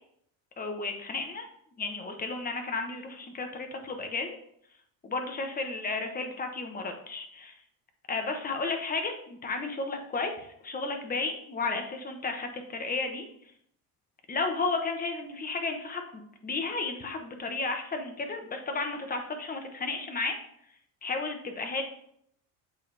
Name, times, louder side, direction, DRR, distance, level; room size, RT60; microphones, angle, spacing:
voice 1, 0.6-1.4 1.8-4.3 5.0-7.6 8.1-13.2 14.3-20.3 21.0-21.8, left 3 dB, 20° left, 4 dB, 1.0 m, -33 dB
7.4 x 4.3 x 3.3 m, 0.70 s
cardioid pair, 125°, 41 cm